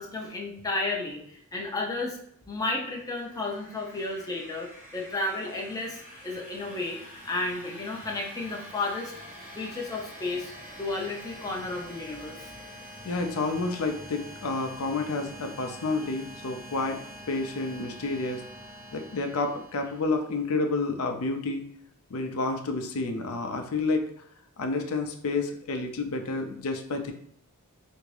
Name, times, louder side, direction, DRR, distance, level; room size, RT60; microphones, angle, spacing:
voice 1, 0.0-2.2 2.5-9.1 9.5-10.5 10.8-12.5, left 2 dB, 15° left, -1 dB, 0.5 m, -33 dB
sound 1, 2.8-20.4, equal, 35° right, 0.7 m, -46 dB
voice 2, 13.0-17.0 17.3-18.4 18.9-21.6 22.1-24.1 24.6-27.1, left 3 dB, 70° left, 5 dB, 0.5 m, -29 dB
3.5 x 2.6 x 3.2 m, 0.65 s
head